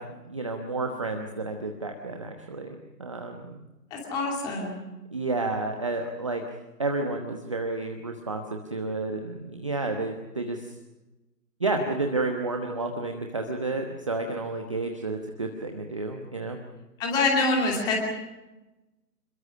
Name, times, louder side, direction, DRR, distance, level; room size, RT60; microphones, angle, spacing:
voice 1, 0.0-3.6 5.1-6.4 6.8-8.4 8.7-10.8 11.6-16.6, right 3 dB, 20° right, 4 dB, 1.0 m, -31 dB
voice 2, 3.9-4.9 17.0-18.0, left 3 dB, 10° left, 0 dB, 2.7 m, -25 dB
27.5 x 22.0 x 6.2 m, 1.1 s
figure-of-eight pair, 150°, 50 cm